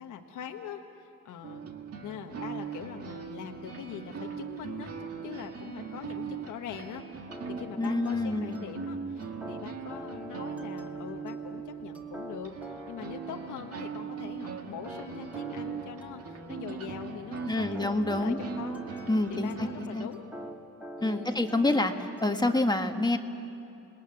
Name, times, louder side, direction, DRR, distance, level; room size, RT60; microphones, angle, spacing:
voice 1, 0.0-1.6 2.0-7.0 7.5-20.3 21.0-21.3, left 8 dB, 80° left, 3 dB, 1.4 m, -42 dB
sound 1, 1.4-20.0, right 6 dB, 50° right, 2.0 m, -40 dB
sound 2, 7.3-22.6, right 1 dB, 5° right, 2.2 m, -46 dB
voice 2, 7.8-8.6 17.5-18.4 19.1-20.1 21.0-21.9 22.2-23.2, left 2 dB, 15° left, 5 dB, 1.6 m, -27 dB
27.5 x 20.0 x 9.7 m, 2.8 s
cardioid pair, 90°, 30 cm